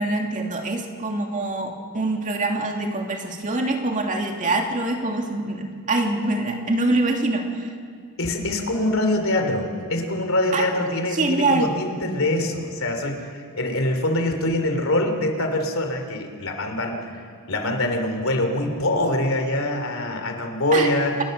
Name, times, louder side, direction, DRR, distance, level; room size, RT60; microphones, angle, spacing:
voice 1, 0.0-7.7 10.5-10.7 11.1-11.7 20.7-20.9, right 2 dB, 35° right, 2 dB, 2.5 m, -24 dB
voice 2, 8.2-17.1 17.5-21.2, left 1 dB, 65° left, 5 dB, 3.3 m, -24 dB
28.5 x 21.5 x 6.7 m, 2.1 s
head